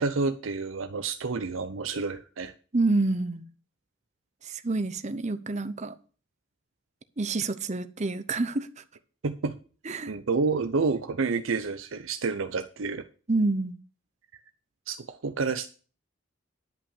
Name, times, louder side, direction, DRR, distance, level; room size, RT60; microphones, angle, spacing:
voice 1, 0.0-2.5 9.2-9.6 10.1-13.0 14.9-15.7, right 4 dB, 80° right, 0.6 m, -29 dB
voice 2, 2.7-3.4 4.5-5.9 7.2-8.7 9.8-10.1 13.3-13.8, right 3 dB, 35° right, 0.8 m, -27 dB
10.5 x 5.6 x 7.1 m
head